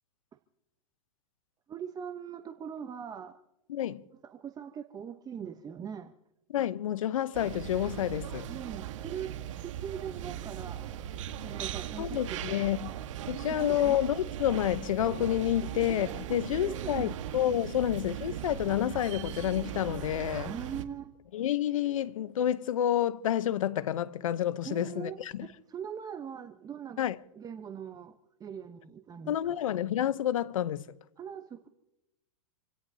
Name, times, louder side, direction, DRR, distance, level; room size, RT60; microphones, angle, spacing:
voice 1, 1.7-3.4 4.2-6.1 8.5-9.3 9.6-10.9 11.4-12.6 13.7-14.0 16.7-17.2 17.7-17.8 20.4-21.1 24.6-27.0 27.4-29.6 31.2-31.7, right 8 dB, 20° right, 0.9 m, -41 dB
voice 2, 3.7-4.0 6.5-8.5 12.0-12.9 13.3-20.5 21.3-25.5 27.0-27.2 29.3-30.9, left 11 dB, 75° left, 0.9 m, -29 dB
sound 1, 7.3-20.8, right 11 dB, 65° right, 1.5 m, -39 dB
28.0 x 17.0 x 2.8 m
hypercardioid pair, 115°, 17 cm